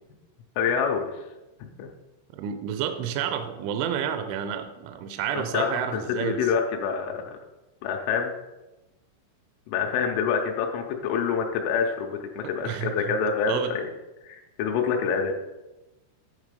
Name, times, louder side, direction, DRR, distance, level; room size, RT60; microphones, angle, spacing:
voice 1, 0.6-1.2 1.8-1.9 5.3-7.3 7.8-8.3 9.7-13.6 14.2-15.3, left 6 dB, 90° left, 2 dB, 3.2 m, -26 dB
voice 2, 2.3-6.5 12.6-13.2 13.5-13.7, right 9 dB, 85° right, 8 dB, 2.8 m, -30 dB
9.8 x 4.1 x 5.1 m, 1.0 s
omnidirectional pair, 5.7 m